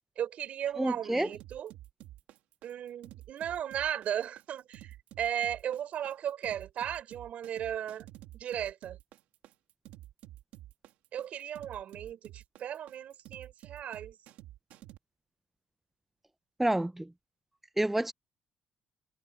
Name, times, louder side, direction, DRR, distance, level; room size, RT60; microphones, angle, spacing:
voice 1, 0.2-1.7 2.6-8.1 8.3-9.0 11.1-14.2, right 10 dB, 65° right, 5.5 m, -36 dB
voice 2, 0.8-1.3 16.6-17.1 17.8-18.1, right 1 dB, 10° right, 0.7 m, -28 dB
sound 1, 1.3-15.0, right 14 dB, 85° right, 2.7 m, -50 dB
supercardioid pair, 80°, 3 cm